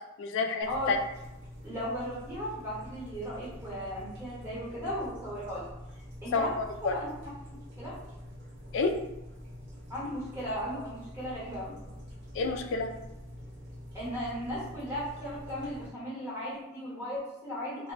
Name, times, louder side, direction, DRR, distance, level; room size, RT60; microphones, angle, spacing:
voice 1, 0.2-1.0 6.3-7.0 8.7-9.0 12.3-12.9, left 4 dB, 60° left, 4 dB, 0.3 m, -29 dB
sound 1, 0.6-15.9, equal, 55° right, 1.0 m, -46 dB
voice 2, 1.6-5.7 6.2-6.5 6.8-7.1 7.8-7.9 9.9-11.7 13.9-17.9, equal, 10° right, -10 dB, 1.1 m, -36 dB
2.2 x 2.1 x 3.8 m, 0.92 s
head